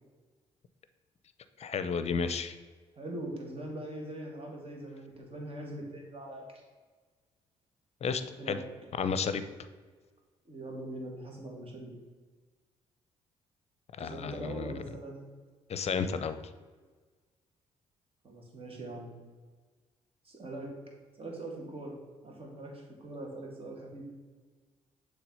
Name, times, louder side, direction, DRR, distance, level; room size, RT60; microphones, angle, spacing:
voice 1, 1.6-2.5 8.0-8.6 8.9-9.4 14.0-14.7 15.7-16.4, left 5 dB, 50° left, 11 dB, 0.6 m, -32 dB
voice 2, 3.0-6.4 8.4-8.7 10.5-11.9 14.0-15.3 18.2-19.2 20.2-20.7 21.2-24.1, right 1 dB, 40° right, 0 dB, 2.0 m, -42 dB
7.0 x 3.3 x 5.4 m, 1.4 s
hypercardioid pair, 50°, 14 cm